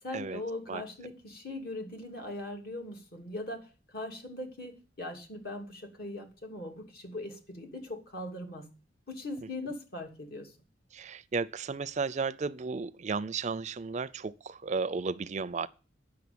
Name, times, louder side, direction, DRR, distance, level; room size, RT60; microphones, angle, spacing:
voice 1, 0.0-8.7 9.1-10.5, left 1 dB, 60° left, 2.7 m, -40 dB
voice 2, 10.9-15.7, right 4 dB, 40° right, 0.4 m, -34 dB
9.4 x 6.4 x 8.6 m
head